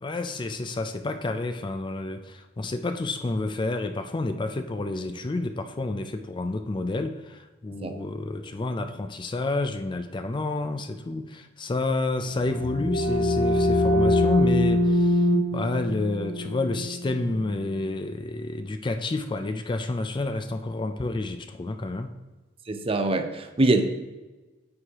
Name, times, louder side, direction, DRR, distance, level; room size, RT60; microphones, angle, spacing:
voice 1, 0.0-22.1, left 2 dB, 25° left, 8 dB, 0.4 m, -29 dB
sound 1, 12.3-17.9, left 1 dB, 75° left, 0.8 m, -24 dB
voice 2, 22.7-23.8, right 2 dB, 30° right, 7 dB, 0.6 m, -23 dB
9.5 x 6.4 x 2.9 m, 1.2 s
head